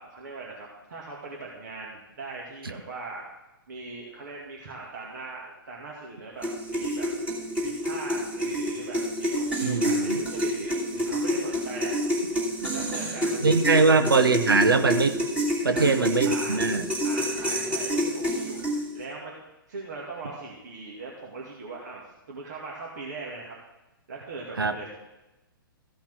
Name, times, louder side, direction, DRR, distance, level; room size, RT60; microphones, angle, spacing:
voice 1, 0.0-3.3 3.7-7.1 7.6-12.0 12.7-14.0 15.7-16.6 17.0-18.6 18.9-19.3 19.7-22.0 22.3-23.6 24.1-24.9, right 3 dB, 50° right, -4 dB, 2.3 m, -40 dB
sound 1, 6.4-19.0, equal, 10° right, 2.7 m, -28 dB
voice 2, 9.6-10.2 12.6-12.7 13.4-15.2 15.6-16.8 24.6-24.7, right 4 dB, 70° right, 9 dB, 0.9 m, -22 dB
15.0 x 5.8 x 6.2 m, 0.99 s
figure-of-eight pair, 115°, 12 cm